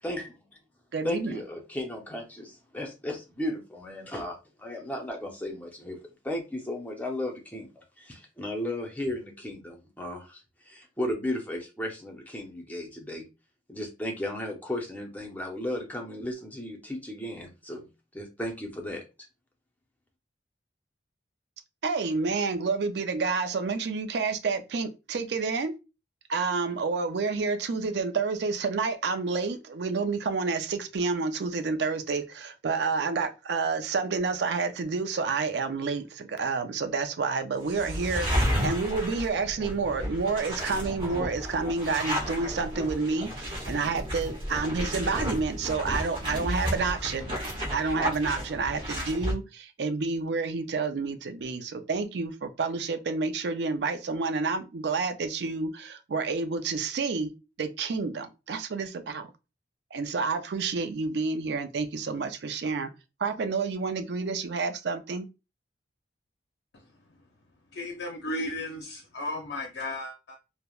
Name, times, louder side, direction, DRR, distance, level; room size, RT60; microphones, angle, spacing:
voice 1, 0.0-0.4 1.0-6.0 6.2-13.3 13.7-17.9 18.1-19.0, left 1 dB, 10° left, 0.6 m, -35 dB
voice 2, 0.9-1.4 21.8-25.7 26.3-47.3 47.7-57.3 57.6-59.3 59.9-62.9 63.2-65.3, right 4 dB, 65° right, 0.4 m, -29 dB
sound 1, 37.7-49.3, equal, 25° right, 0.9 m, -32 dB
voice 3, 67.7-70.4, left 1 dB, 65° left, 0.5 m, -34 dB
3.3 x 2.0 x 2.3 m
head